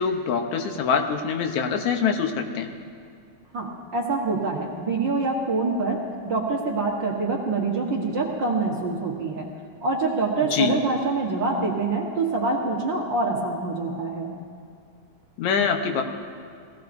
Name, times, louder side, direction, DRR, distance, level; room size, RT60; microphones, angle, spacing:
voice 1, 0.0-2.7 10.5-10.8 15.4-16.0, left 6 dB, 75° left, 5 dB, 2.3 m, -24 dB
voice 2, 3.5-9.5 9.8-14.3, right 3 dB, 50° right, -3 dB, 1.6 m, -25 dB
22.0 x 16.5 x 2.6 m, 2.3 s
omnidirectional pair, 3.4 m